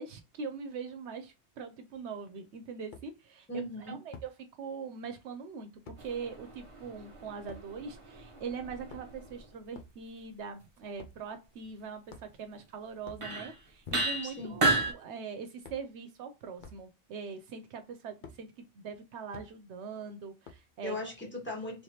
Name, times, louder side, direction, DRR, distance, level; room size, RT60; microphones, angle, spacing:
voice 1, 0.0-3.5 3.9-4.3 4.6-21.0, right 5 dB, 80° right, 0.9 m, -42 dB
sound 1, 1.9-2.0 2.9-3.1 4.1-4.3 5.8-6.0 7.5-7.6 8.7-9.3 9.7-10.0 10.9-11.2 12.1-12.5 13.0-13.3 13.8-14.3 14.7-15.0 15.6-15.9 16.6-16.8 18.2-18.4 19.3-19.5 20.4-20.7, left 4 dB, 50° left, 0.7 m, -48 dB
voice 2, 3.5-4.0 14.2-14.6 20.8-21.8, left 1 dB, 10° left, 1.4 m, -38 dB
sound 2, 6.0-9.5 12.5-12.6 13.2-13.6 13.9-14.9, right 2 dB, 30° right, 0.8 m, -33 dB
3.5 x 3.3 x 2.7 m
omnidirectional pair, 1.2 m